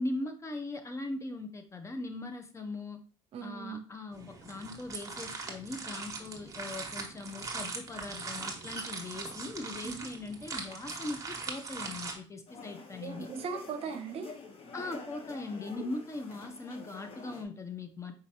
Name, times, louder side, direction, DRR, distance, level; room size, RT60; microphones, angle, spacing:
voice 1, 0.0-3.0 3.4-13.3 14.7-18.1, left 2 dB, 25° left, 7 dB, 0.7 m, -40 dB
voice 2, 3.3-3.8 9.8-10.0 13.0-14.3, right 5 dB, 55° right, 6 dB, 0.7 m, -38 dB
sound 1, 4.1-12.1, right 4 dB, 25° right, 1.2 m, -41 dB
sound 2, 12.5-17.4, left 4 dB, 50° left, 1.0 m, -47 dB
5.0 x 3.2 x 2.8 m, 0.38 s
supercardioid pair, 80°, 12 cm